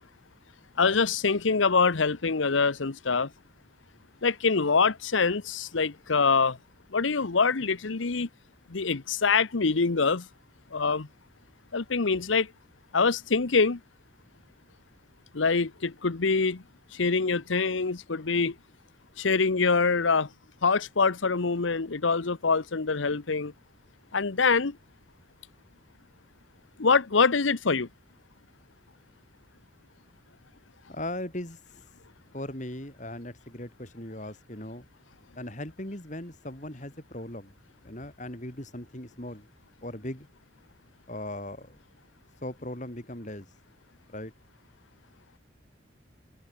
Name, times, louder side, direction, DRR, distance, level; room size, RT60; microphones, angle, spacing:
voice 1, 0.8-3.3 4.2-6.6 6.9-8.3 8.7-10.2 10.7-11.1 11.7-12.5 12.9-13.8 15.3-16.6 16.9-18.5 19.2-20.3 20.6-23.5 24.1-24.8 26.8-27.9, left 4 dB, 80° left, 1.0 m, -25 dB
voice 2, 30.9-31.8 32.3-34.9 35.4-37.5 37.8-39.5 39.8-40.3 41.1-41.8 42.4-43.5 44.1-44.3, left 1 dB, 40° left, 3.9 m, -38 dB
head